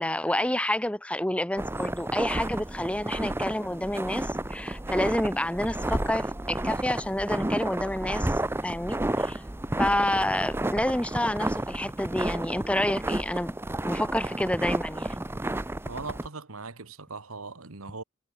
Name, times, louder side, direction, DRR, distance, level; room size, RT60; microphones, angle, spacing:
voice 1, 0.0-9.4 9.8-13.6 13.8-15.2, left 1 dB, 5° left, 1.1 m, -29 dB
sound 1, 1.6-16.3, right 1 dB, 10° right, 0.6 m, -31 dB
voice 2, 15.8-18.0, right 4 dB, 90° right, 1.9 m, -39 dB
head